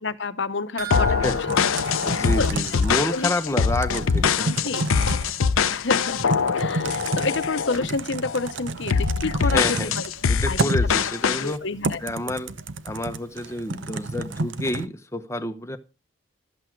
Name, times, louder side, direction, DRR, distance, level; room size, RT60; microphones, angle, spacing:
voice 1, 0.0-1.7 2.1-2.5 3.1-3.3 4.4-4.9 5.7-6.3 6.5-10.1 10.5-10.6 11.4-12.0, left 3 dB, 55° left, 0.9 m, -29 dB
sound 1, 0.8-3.3 3.6-3.7 4.1-4.2, right 13 dB, 80° right, 1.5 m, -38 dB
sound 2, 0.9-7.9 8.2-8.5 8.9-11.5, left 6 dB, 80° left, 0.6 m, -23 dB
Typing, 1.5-14.9, right 2 dB, 60° right, 0.8 m, -31 dB
voice 2, 2.0-4.7 9.4-9.9 10.3-11.6 12.0-12.5 12.8-15.8, left 1 dB, 15° left, 0.9 m, -29 dB
13.0 x 8.4 x 4.6 m
head